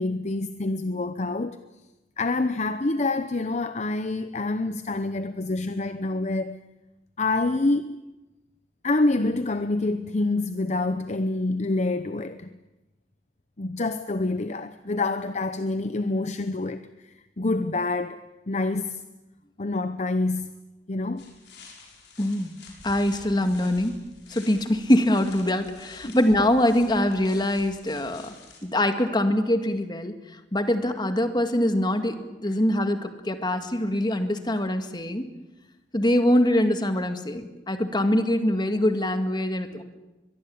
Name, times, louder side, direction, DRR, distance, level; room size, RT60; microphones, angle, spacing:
voice 1, 0.0-1.6 2.2-6.6 7.2-8.0 8.8-12.5 13.6-18.2 18.5-19.0 19.6-20.6 20.9-21.3 26.0-26.1, left 2 dB, 40° left, 0.8 m, -27 dB
sound 1, 21.2-28.6, left 4 dB, 70° left, 6.7 m, -49 dB
voice 2, 22.2-22.5 22.8-23.9 24.3-28.3 28.6-30.2 30.5-35.2 35.9-39.8, left 1 dB, 25° left, 2.0 m, -23 dB
23.0 x 22.5 x 8.6 m
head